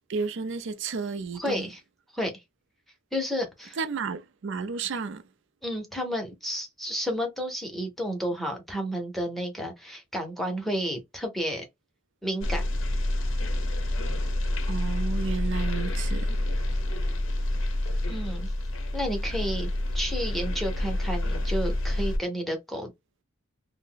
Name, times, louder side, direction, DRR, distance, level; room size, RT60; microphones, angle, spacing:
voice 1, 0.1-1.7 3.8-5.2 14.7-16.4, right 5 dB, 60° right, 0.4 m, -32 dB
voice 2, 1.3-1.8 2.1-2.3 3.1-3.8 5.6-11.6 12.2-12.6 18.1-18.5 18.9-22.9, equal, ahead, 0.7 m, -31 dB
sound 1, 12.4-22.2, left 1 dB, 60° left, 0.6 m, -28 dB
2.5 x 2.0 x 3.7 m
head